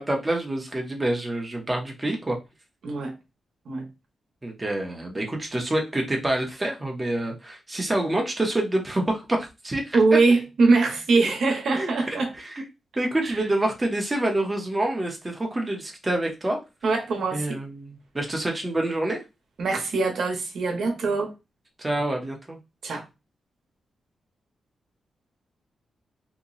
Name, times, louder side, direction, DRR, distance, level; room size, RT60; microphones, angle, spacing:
voice 1, 0.0-2.4 4.4-10.0 11.8-12.6 13.0-16.6 17.3-19.2 21.8-22.6, right 1 dB, 15° right, 0.8 m, -27 dB
voice 2, 2.8-3.1 3.7-3.9 9.9-12.3 13.2-13.4 16.8-17.6 19.6-21.3 22.8-23.0, right 3 dB, 65° right, 0.9 m, -22 dB
2.9 x 2.2 x 3.9 m
wide cardioid pair, 160°, 0 cm